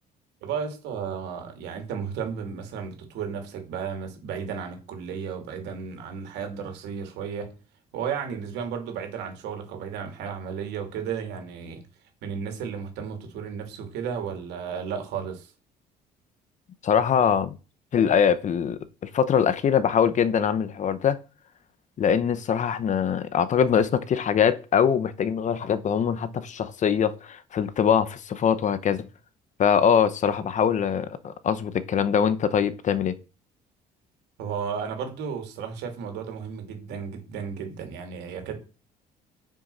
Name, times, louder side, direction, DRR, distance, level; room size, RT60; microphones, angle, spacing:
voice 1, 0.4-7.6 7.9-11.9 12.2-15.5 34.4-38.6, right 7 dB, 85° right, 2.8 m, -33 dB
voice 2, 16.8-17.6 17.9-18.8 19.1-21.2 22.0-29.1 29.6-33.1, left 7 dB, 45° left, 1.0 m, -23 dB
7.0 x 6.3 x 5.6 m
cardioid pair, 110°, 17 cm